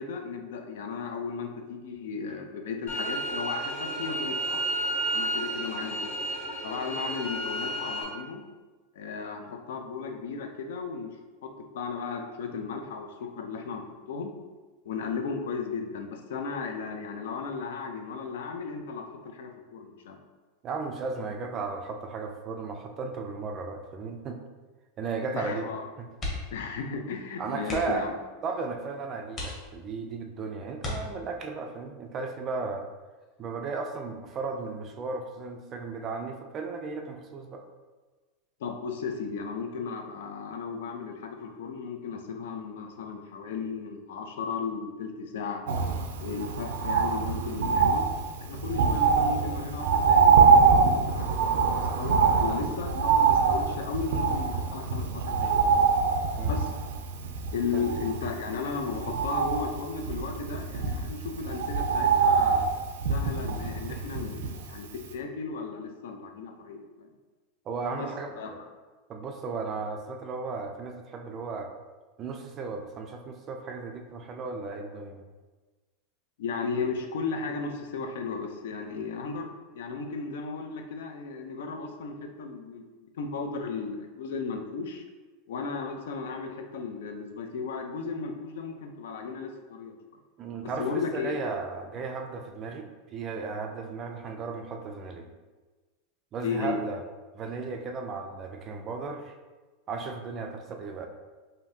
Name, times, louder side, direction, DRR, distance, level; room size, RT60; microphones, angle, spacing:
voice 1, 0.0-4.6 5.1-6.1 6.6-8.4 8.9-11.1 11.4-14.3 14.8-20.2 25.3-25.8 26.5-28.1 38.6-45.6 46.2-48.1 48.4-55.8 56.4-56.7 57.5-62.7 63.1-67.1 68.0-68.1 68.4-68.5 76.4-82.8 83.1-85.0 85.5-90.0 90.8-91.4 96.4-96.8, left 5 dB, 80° left, 4 dB, 0.5 m, -35 dB
sound 1, 2.9-8.0, right 1 dB, 50° left, 1.4 m, -31 dB
voice 2, 20.6-24.4 25.0-25.7 26.0-26.1 27.4-28.1 28.4-32.9 33.4-37.6 56.4-56.6 57.7-57.9 67.7-68.6 69.1-71.7 72.2-75.2 90.4-95.3 96.3-97.0 97.3-99.3 99.9-101.1, right 4 dB, 20° right, 4 dB, 0.3 m, -35 dB
sound 2, 26.1-26.7 27.0-27.1 27.6-28.1 28.7-28.8 29.3-30.1 30.8-31.5 33.1-33.4 33.8-33.9, left 2 dB, 20° left, 0.8 m, -37 dB
Bird, 45.7-64.8 65.1-65.2, right 5 dB, 85° right, 0.5 m, -24 dB
5.0 x 2.7 x 2.7 m, 1.3 s
supercardioid pair, 175°, 0 cm